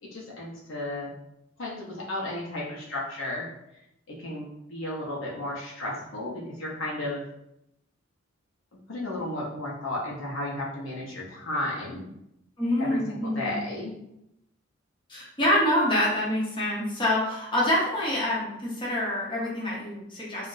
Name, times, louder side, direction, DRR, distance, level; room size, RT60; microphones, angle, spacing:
voice 1, 0.0-1.1 1.6-3.5 4.1-7.2 8.9-12.0 12.8-13.9, left 1 dB, 75° left, -4 dB, 0.8 m, -33 dB
voice 2, 12.6-13.6 15.1-20.5, left 1 dB, 25° left, -6 dB, 0.8 m, -26 dB
2.4 x 2.1 x 3.8 m, 0.81 s
head